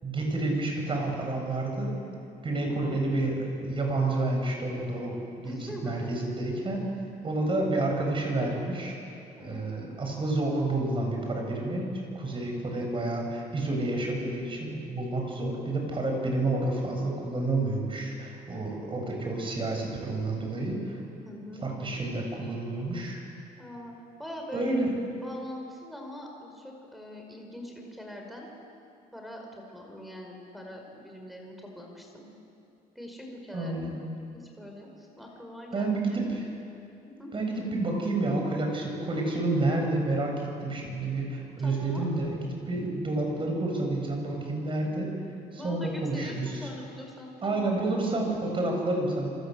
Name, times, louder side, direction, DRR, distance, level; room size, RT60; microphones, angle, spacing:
voice 1, 0.0-2.0 2.4-6.8 7.2-8.9 9.4-21.0 21.6-23.2 24.5-24.9 33.5-34.0 35.7-36.4 37.3-42.4 42.7-45.1 45.5-46.7 47.4-49.4, right 2 dB, 30° right, 1 dB, 8.0 m, -29 dB
voice 2, 5.4-6.1 9.3-10.0 21.2-21.7 23.6-23.9 24.2-24.8 25.2-28.5 29.1-32.3 33.0-33.7 34.3-36.3 37.2-37.3 41.6-42.1 45.5-47.8, left 1 dB, ahead, 0 dB, 5.1 m, -43 dB
27.5 x 26.5 x 8.1 m, 2.7 s
cardioid pair, 110°, 17 cm